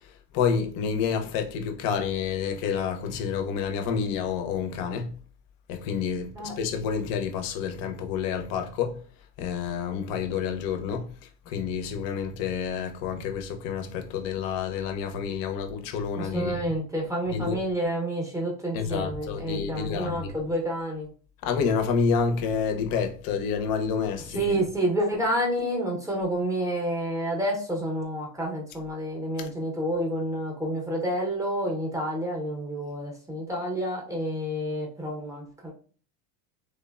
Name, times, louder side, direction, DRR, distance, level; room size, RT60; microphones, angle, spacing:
voice 1, 0.3-5.1 5.7-9.0 9.4-11.1 11.5-16.7 17.3-17.6 18.7-20.3 21.4-24.6 29.4-29.5, left 6 dB, 50° left, 0.6 m, -29 dB
voice 2, 16.2-21.1 24.3-35.7, right 1 dB, 5° right, 0.6 m, -29 dB
3.1 x 2.1 x 2.3 m
supercardioid pair, 120°, 46 cm